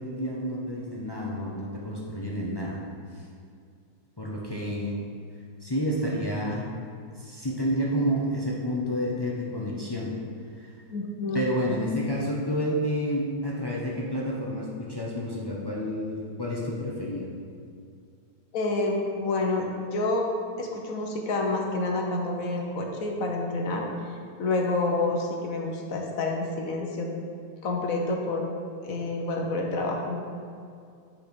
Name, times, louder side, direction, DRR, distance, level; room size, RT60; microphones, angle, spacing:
voice 1, 0.0-2.8 3.1-3.2 4.2-5.0 5.6-6.7 7.1-10.1 10.6-10.7 11.3-17.3, equal, 40° left, -4 dB, 0.3 m, -29 dB
voice 2, 10.9-11.4 18.5-20.3 20.6-23.9 24.4-27.1 27.6-28.4 28.8-30.2, left 2 dB, 55° left, 1 dB, 1.1 m, -28 dB
8.1 x 4.5 x 5.2 m, 2.3 s
omnidirectional pair, 1.9 m